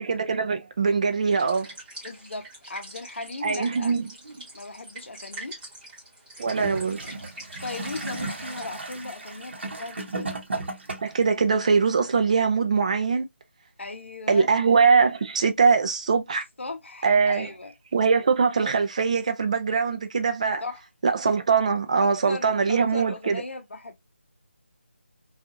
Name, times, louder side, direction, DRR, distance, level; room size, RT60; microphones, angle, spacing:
voice 1, 0.0-1.7 3.4-4.4 6.4-7.0 11.0-13.3 14.3-16.4 17.0-17.5 17.9-20.6 21.0-23.4, right 5 dB, 30° right, 0.4 m, -22 dB
sound 1, 1.3-8.7, right 1 dB, 10° right, 1.0 m, -43 dB
voice 2, 2.0-4.0 4.5-5.6 7.6-10.3 13.8-14.5 16.6-17.7 20.6-20.8 22.0-24.0, left 3 dB, 65° left, 0.7 m, -37 dB
Gurgling / Toilet flush, 6.4-11.3 12.1-12.2, right 2 dB, 60° right, 0.9 m, -35 dB
2.7 x 2.4 x 2.5 m
figure-of-eight pair, 165°, 7 cm